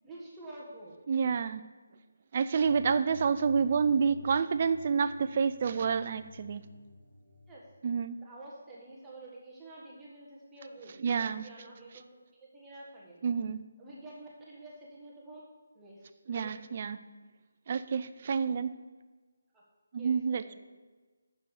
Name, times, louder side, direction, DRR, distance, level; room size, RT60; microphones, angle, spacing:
voice 1, 0.0-1.0 7.5-7.6 8.1-12.1 12.4-13.2 13.8-15.5 15.7-16.5 19.5-19.6 20.0-20.6, right 2 dB, 10° right, -6 dB, 1.5 m, -49 dB
voice 2, 1.1-1.7 2.3-6.7 7.8-8.2 11.0-11.5 13.2-13.6 16.3-17.0 17.7-18.7 19.9-20.6, right 6 dB, 35° right, 12 dB, 0.5 m, -28 dB
sound 1, 2.6-7.6, left 1 dB, 10° left, 2.7 m, -50 dB
7.3 x 6.9 x 7.9 m, 1.3 s
figure-of-eight pair, 165°, 0 cm